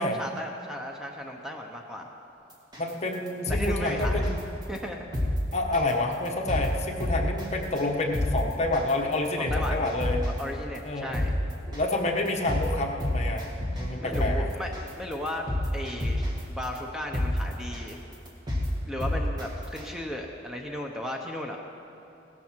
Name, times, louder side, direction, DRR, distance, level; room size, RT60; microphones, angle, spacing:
voice 1, 0.0-2.1 3.5-4.3 4.7-5.3 9.5-9.9 10.2-11.3 14.0-15.5 15.7-18.0 18.9-21.6, equal, 5° right, 1 dB, 0.8 m, -35 dB
sound 1, 2.7-2.9 3.3-4.4 4.8-4.9 5.1-5.3 5.7-5.9 6.3-6.7 7.0-7.4 7.8-7.9 8.1-8.3 8.7-8.9 9.3-10.4 10.8-10.9 11.1-11.3 11.7-11.9 12.3-12.6 13.0-13.9 14.1-14.3 14.7-14.9 15.3-16.4 16.8-16.9 17.1-17.3 17.7-17.9 18.3-18.7 19.0-19.4 19.8-19.9, left 1 dB, 25° right, 2.1 m, -28 dB
voice 2, 2.8-4.5 5.5-10.2 10.8-11.1 11.7-13.4 13.8-14.5, left 2 dB, 35° left, 1 dB, 1.3 m, -28 dB
17.0 x 13.0 x 4.6 m, 3.0 s
head